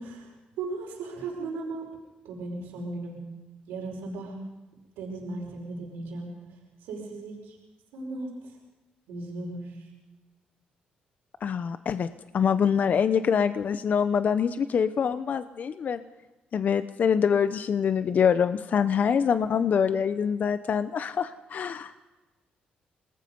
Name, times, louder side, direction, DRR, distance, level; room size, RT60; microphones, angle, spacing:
voice 1, 0.0-1.9 2.2-3.2 3.7-4.4 5.0-6.3 6.8-7.6 7.9-8.5 9.1-9.9, right 3 dB, 90° right, -1 dB, 5.2 m, -36 dB
voice 2, 11.4-12.1 12.3-16.0 16.5-21.9, left 7 dB, 55° left, 11 dB, 0.9 m, -25 dB
26.5 x 20.0 x 5.4 m, 1.2 s
supercardioid pair, 70°, 3 cm